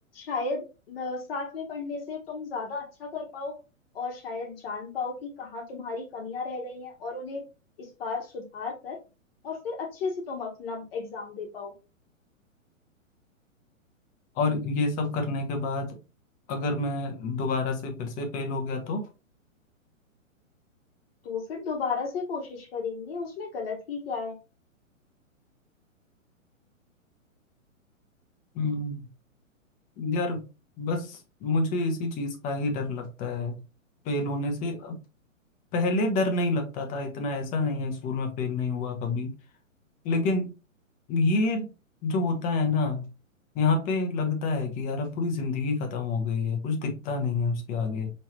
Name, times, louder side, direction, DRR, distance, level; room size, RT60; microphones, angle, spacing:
voice 1, 0.1-3.6 3.9-7.4 7.8-9.0 9.4-11.7 21.2-24.4, left 4 dB, 45° left, 1.2 m, -34 dB
voice 2, 14.3-16.0 16.5-19.1 28.5-29.1 30.0-30.4 30.8-33.6 34.0-35.0 35.7-39.3 40.0-40.5 41.1-41.7 42.0-43.1 43.5-48.1, left 3 dB, 20° left, 0.8 m, -28 dB
4.5 x 3.1 x 2.9 m
figure-of-eight pair, 120°, 40 cm